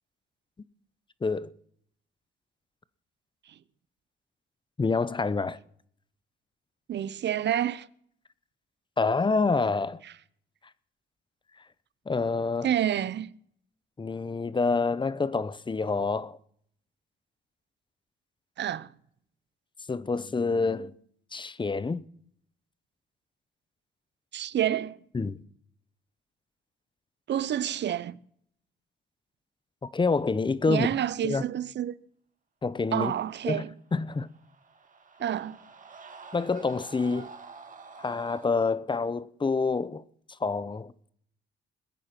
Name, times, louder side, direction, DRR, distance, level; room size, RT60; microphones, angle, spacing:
voice 1, 4.8-5.6 9.0-10.0 12.1-12.7 14.0-16.4 19.9-20.9 21.3-22.0 25.1-25.4 29.8-30.9 31.2-31.4 32.6-33.1 33.4-34.3 36.3-37.3 38.0-40.0 40.4-41.1, left 4 dB, 20° left, 0.8 m, -27 dB
voice 2, 6.9-7.9 12.6-13.4 18.6-18.9 24.3-25.0 27.3-28.2 30.7-31.9 32.9-33.7 35.2-35.6, right 10 dB, 60° right, 0.8 m, -28 dB
sound 1, 34.1-38.5, right 4 dB, 40° right, 2.2 m, -48 dB
21.5 x 9.1 x 6.0 m
cardioid pair, 90°, 21 cm